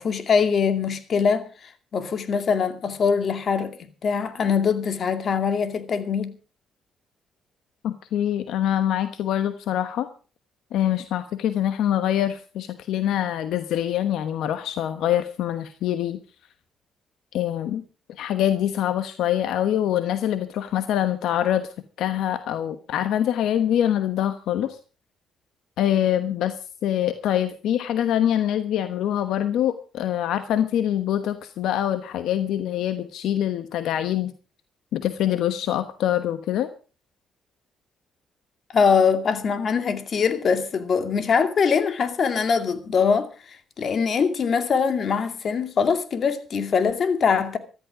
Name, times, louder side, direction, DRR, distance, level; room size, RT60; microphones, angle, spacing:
voice 1, 0.0-1.5 1.9-6.3 38.7-43.3 43.8-47.6, left 6 dB, 55° left, 2.4 m, -22 dB
voice 2, 7.8-10.1 10.7-16.2 17.3-17.8 18.2-21.7 22.0-24.8 25.8-26.6 26.8-34.3 34.9-36.7, left 11 dB, 85° left, 1.1 m, -24 dB
15.0 x 13.0 x 4.9 m
cardioid pair, 90°, 0 cm